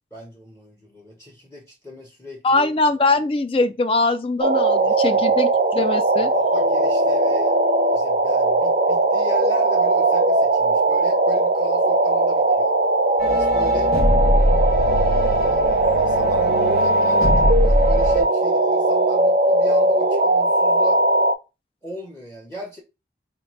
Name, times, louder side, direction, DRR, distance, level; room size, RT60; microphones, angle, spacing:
voice 1, 0.1-2.7 4.8-5.4 6.2-7.6 7.9-12.8 13.3-14.0 14.7-21.0 21.8-22.8, equal, 15° left, 0.9 m, -38 dB
voice 2, 2.4-6.3, left 3 dB, 30° left, 0.4 m, -22 dB
sound 1, 4.4-21.3, right 2 dB, 50° right, 0.5 m, -19 dB
sound 2, 13.2-18.2, equal, 55° left, 0.9 m, -22 dB
3.9 x 2.4 x 4.4 m
head